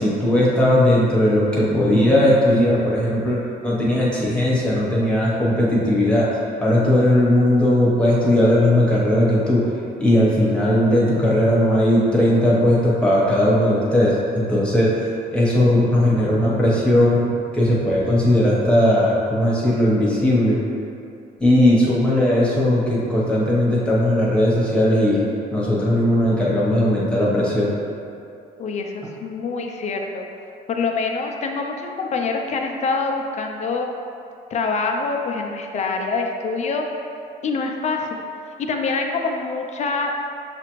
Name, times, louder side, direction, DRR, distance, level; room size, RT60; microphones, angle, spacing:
voice 1, 0.0-6.3 6.6-9.6 10.0-14.9 15.3-20.6 21.4-25.2 25.5-27.7, left 1 dB, 5° left, -7 dB, 1.1 m, -18 dB
voice 2, 28.6-30.2 30.7-33.9 34.5-36.9 37.4-38.2 38.6-40.1, left 4 dB, 45° left, 3 dB, 0.5 m, -25 dB
6.6 x 2.5 x 3.0 m, 2.5 s
cardioid pair, 110°, 17 cm